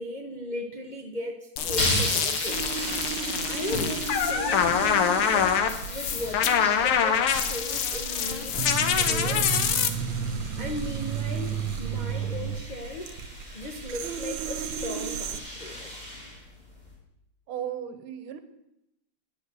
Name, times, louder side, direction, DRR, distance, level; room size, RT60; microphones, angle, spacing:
voice 1, 0.0-2.6 3.4-8.6 9.0-9.5 10.6-13.1 13.5-15.9, left 2 dB, 40° left, 0 dB, 0.6 m, -37 dB
sound 1, 1.6-9.9, left 8 dB, 90° left, 1.8 m, -25 dB
sound 2, 1.6-17.0, equal, 20° left, 3.0 m, -36 dB
sound 3, 2.5-15.4, right 7 dB, 70° right, 1.4 m, -33 dB
voice 2, 17.5-18.4, right 9 dB, 85° right, 9 dB, 1.9 m, -35 dB
9.8 x 7.2 x 8.0 m, 0.85 s
omnidirectional pair, 2.3 m